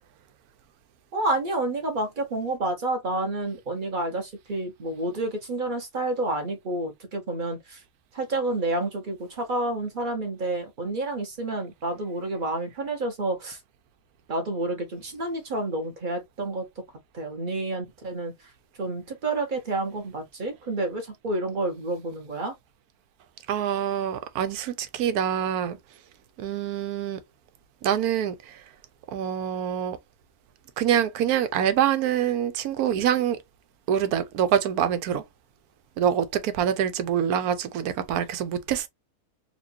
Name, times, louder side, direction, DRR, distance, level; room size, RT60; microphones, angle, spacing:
voice 1, 1.1-7.8 8.1-13.6 14.3-16.6 17.1-18.3 18.8-22.6, right 2 dB, 35° right, 1.1 m, -29 dB
voice 2, 23.5-25.8 26.4-27.2 27.8-28.6 29.1-30.0 30.8-33.4 33.9-35.2 36.0-38.9, right 9 dB, 85° right, 1.1 m, -25 dB
4.2 x 2.5 x 2.7 m
omnidirectional pair, 1.6 m